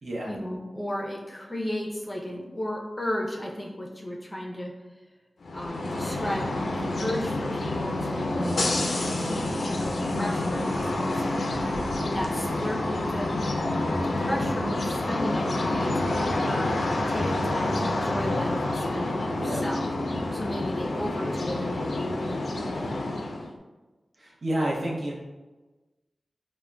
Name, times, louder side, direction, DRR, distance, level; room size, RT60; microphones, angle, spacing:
voice 1, 0.3-4.7 5.5-8.6 8.9-11.2 12.0-13.4 14.2-16.7 17.1-23.0, left 1 dB, 20° left, -1 dB, 0.5 m, -34 dB
sound 1, 5.4-23.5, left 2 dB, 85° left, 0.3 m, -28 dB
voice 2, 24.2-25.1, right 1 dB, 70° right, -4 dB, 0.7 m, -29 dB
3.7 x 2.1 x 2.2 m, 1.2 s
wide cardioid pair, 85°, 0 cm